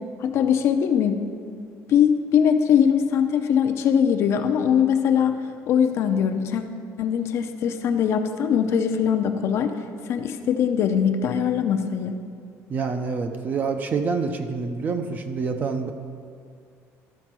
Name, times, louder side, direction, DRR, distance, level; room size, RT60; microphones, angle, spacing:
voice 1, 0.2-1.2 1.9-5.4 5.7-6.6 7.0-9.7 10.1-12.2, left 8 dB, 50° left, 7 dB, 0.6 m, -21 dB
voice 2, 12.7-15.9, right 5 dB, 30° right, 7 dB, 0.6 m, -27 dB
12.5 x 4.5 x 6.0 m, 2.2 s
cardioid pair, 165°, 6 cm